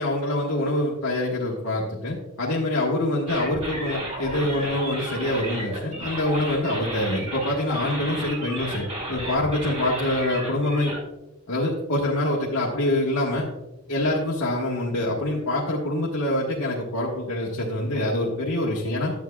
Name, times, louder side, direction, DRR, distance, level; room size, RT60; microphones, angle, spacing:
voice 1, 0.0-10.9 11.5-13.4 13.9-19.1, left 1 dB, 65° left, -5 dB, 1.5 m, -25 dB
sound 1, 3.3-11.0, right 1 dB, 30° right, 3.5 m, -33 dB
12.0 x 8.3 x 2.3 m, 0.96 s
head